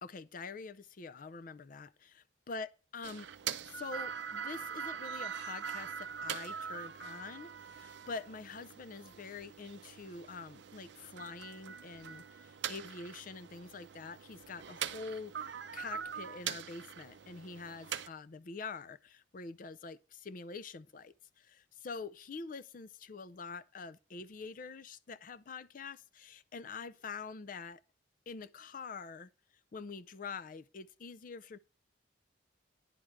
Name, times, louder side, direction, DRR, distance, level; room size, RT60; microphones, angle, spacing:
voice 1, 0.0-3.3 3.6-27.8 28.3-29.3 29.7-31.6, left 4 dB, 45° left, 0.4 m, -46 dB
sound 1, 3.0-18.1, right 8 dB, 65° right, 0.5 m, -43 dB
10.0 x 3.5 x 6.4 m
head